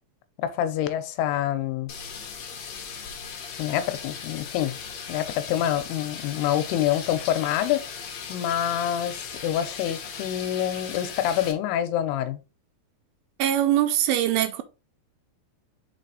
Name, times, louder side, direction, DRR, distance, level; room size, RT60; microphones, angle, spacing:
voice 1, 0.4-1.9 3.6-4.8 5.1-7.8 8.3-12.4, left 11 dB, 85° left, 2.7 m, -26 dB
sound 1, 1.9-11.5, left 6 dB, 65° left, 1.8 m, -38 dB
voice 2, 13.4-14.6, right 12 dB, 80° right, 2.3 m, -22 dB
6.2 x 4.2 x 3.9 m
omnidirectional pair, 4.6 m